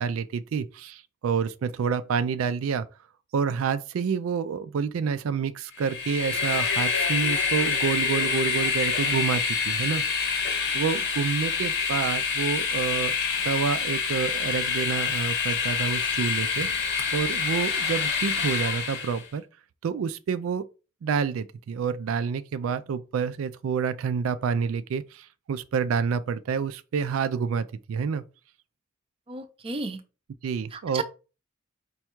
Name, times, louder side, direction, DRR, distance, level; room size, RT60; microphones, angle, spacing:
voice 1, 0.0-2.9 3.3-10.0 10.3-10.4 10.7-13.1 13.4-16.7 17.1-19.5 19.8-20.6 21.0-28.2 30.4-31.0, right 6 dB, 80° right, 0.3 m, -28 dB
Train, 5.8-19.2, left 5 dB, 60° left, 0.9 m, -27 dB
voice 2, 29.3-30.0 30.7-31.0, right 3 dB, 25° right, 0.6 m, -33 dB
5.3 x 2.3 x 4.4 m
head